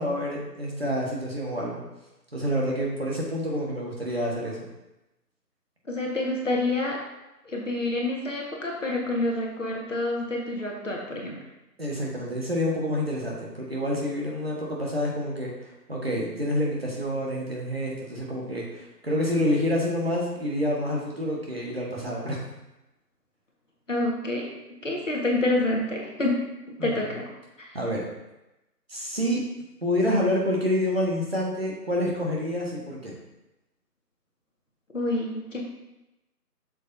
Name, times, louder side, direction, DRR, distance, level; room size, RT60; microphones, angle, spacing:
voice 1, 0.0-1.8 2.3-4.7 11.8-22.4 26.8-26.9 27.7-28.0 28.9-29.4 29.8-33.1, equal, 35° right, -3 dB, 1.4 m, -28 dB
voice 2, 5.9-7.0 7.4-11.4 23.9-24.5 24.8-26.4 26.8-27.3 27.6-27.8 34.9-35.6, left 2 dB, 50° left, -1 dB, 1.5 m, -27 dB
8.3 x 6.6 x 2.6 m, 0.97 s
figure-of-eight pair, 175°, 49 cm